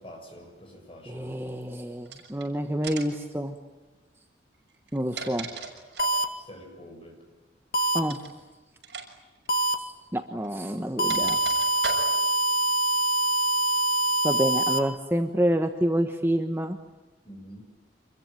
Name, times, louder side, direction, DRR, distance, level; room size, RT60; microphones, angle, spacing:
voice 1, 0.0-1.4 6.4-7.2 17.2-17.6, equal, 30° left, 2 dB, 7.6 m, -46 dB
voice 2, 1.0-3.5 4.9-5.5 7.9-8.2 10.1-11.4 14.2-16.8, equal, 15° right, 5 dB, 1.2 m, -28 dB
sound 1, 2.0-2.4 2.8-3.2 4.7-6.2 8.0-8.3 8.8-9.1 9.3-9.5 10.4-12.4, right 4 dB, 70° right, 6.4 m, -38 dB
sound 2, 6.0-6.2 7.7-8.0 9.5-9.7 11.0-14.8, right 2 dB, 55° left, 2.3 m, -24 dB
27.0 x 22.0 x 9.1 m, 1.2 s
head